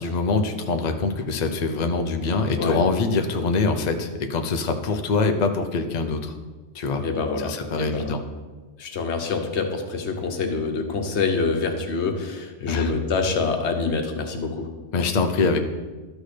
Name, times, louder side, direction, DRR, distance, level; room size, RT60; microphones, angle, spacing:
voice 1, 0.0-6.4 6.7-7.0 7.4-8.2 12.7-12.9 14.9-15.6, left 4 dB, 45° left, 6 dB, 0.7 m, -24 dB
voice 2, 7.0-8.2 8.8-14.7, left 4 dB, 90° left, 5 dB, 1.2 m, -26 dB
12.5 x 6.2 x 3.3 m, 1.3 s
omnidirectional pair, 1.1 m